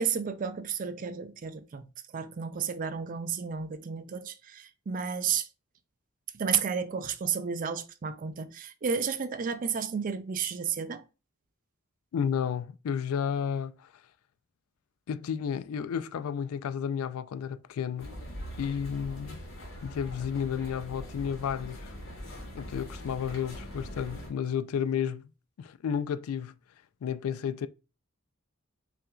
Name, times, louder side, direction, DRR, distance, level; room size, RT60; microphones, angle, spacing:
voice 1, 0.0-1.9 2.1-5.5 6.3-11.0, right 6 dB, 40° right, 0.4 m, -32 dB
voice 2, 12.1-13.9 15.1-18.1 18.6-19.5 19.8-21.9 22.5-25.3 25.6-26.5 27.0-27.7, left 7 dB, 90° left, 0.3 m, -32 dB
sound 1, 18.0-24.3, equal, 70° left, 1.5 m, -42 dB
5.6 x 2.5 x 2.3 m
head